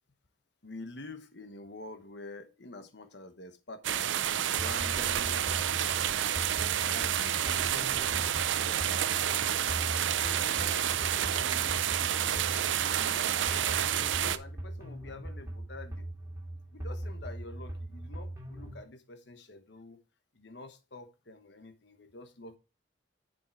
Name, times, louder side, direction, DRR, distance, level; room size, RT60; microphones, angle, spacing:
voice 1, 0.6-4.3 4.5-6.1 6.9-9.4 10.2-16.1 16.7-20.0 20.3-22.6, left 2 dB, 65° left, 1.1 m, -47 dB
sound 1, 3.8-14.4, right 10 dB, 80° right, 0.5 m, -29 dB
sound 2, 4.6-18.8, right 1 dB, 15° right, 2.5 m, -40 dB
7.3 x 5.3 x 4.5 m
head